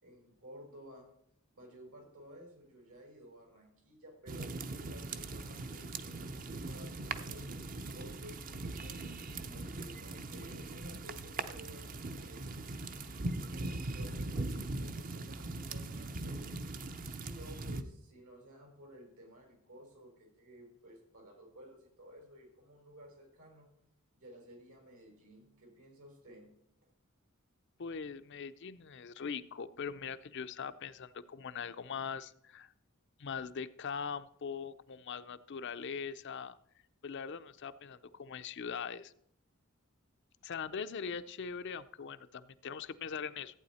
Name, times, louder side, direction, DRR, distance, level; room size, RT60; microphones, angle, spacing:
voice 1, 0.0-1.1 1.5-9.0 9.4-12.6 13.4-16.5 16.9-23.7 24.2-26.5, equal, 85° right, 1 dB, 4.7 m, -54 dB
sound 1, 4.3-17.8, right 2 dB, 40° right, 0.6 m, -40 dB
voice 2, 27.8-32.7 33.2-36.6 37.0-39.1 40.4-43.5, left 6 dB, 55° left, 12 dB, 0.5 m, -41 dB
14.5 x 8.7 x 4.2 m, 0.71 s
head